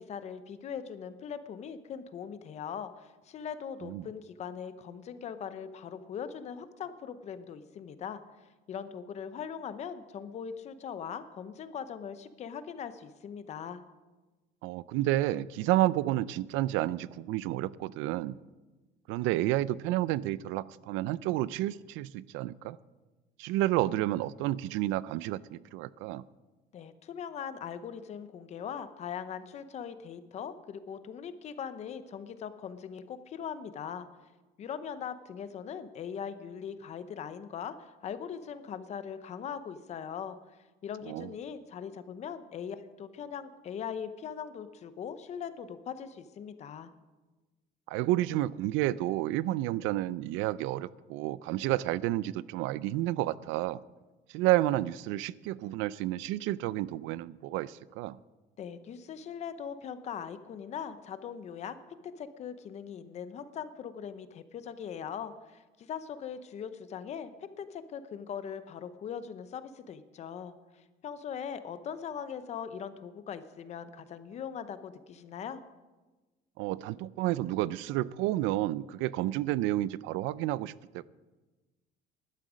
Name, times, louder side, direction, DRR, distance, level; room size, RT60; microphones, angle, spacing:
voice 1, 0.0-8.2 8.7-13.8 26.7-34.1 34.6-40.4 40.8-46.9 58.6-61.8 62.0-67.3 67.6-75.6, left 7 dB, 35° left, 12 dB, 0.7 m, -40 dB
voice 2, 14.6-18.4 19.1-22.8 23.4-26.2 41.1-41.3 47.9-53.8 54.3-58.2 76.6-81.0, right 15 dB, 90° right, 20 dB, 0.5 m, -30 dB
15.0 x 11.5 x 5.0 m, 1.2 s
cardioid pair, 175°, 20 cm